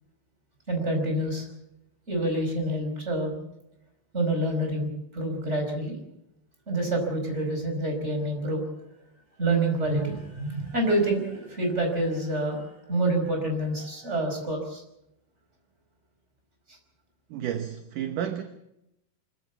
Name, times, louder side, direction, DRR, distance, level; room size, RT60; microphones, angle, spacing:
voice 1, 0.7-1.5 2.1-3.4 4.1-6.0 6.7-8.7 9.4-14.8 16.7-16.8, right 1 dB, 15° right, 4.9 m, -27 dB
voice 2, 17.3-18.4, right 9 dB, 65° right, 2.3 m, -31 dB
25.0 x 14.5 x 8.2 m
omnidirectional pair, 4.5 m